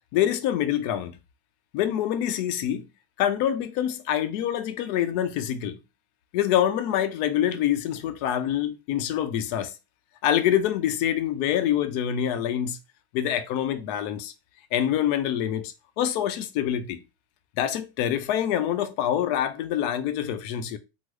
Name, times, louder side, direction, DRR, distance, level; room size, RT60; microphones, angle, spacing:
voice 1, 0.1-1.2 1.7-2.8 3.2-5.8 6.3-9.7 10.2-12.8 13.1-14.3 14.7-17.0 17.6-20.8, left 10 dB, 55° left, 0.6 m, -26 dB
3.7 x 2.0 x 3.1 m
supercardioid pair, 135°, 49 cm